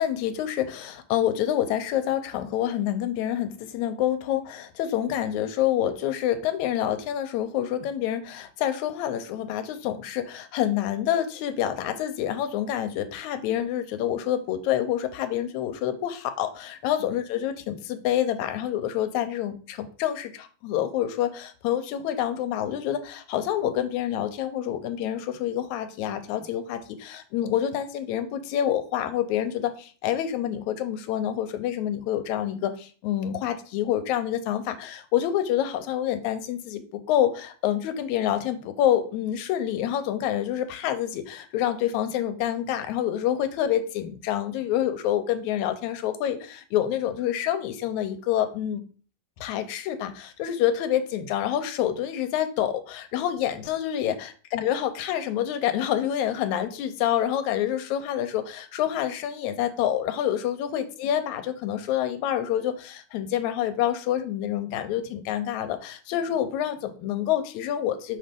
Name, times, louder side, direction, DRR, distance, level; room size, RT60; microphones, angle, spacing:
voice 1, 0.0-48.8 49.4-68.2, left 11 dB, 75° left, 9 dB, 1.9 m, -27 dB
5.8 x 3.3 x 5.1 m, 0.40 s
omnidirectional pair, 3.6 m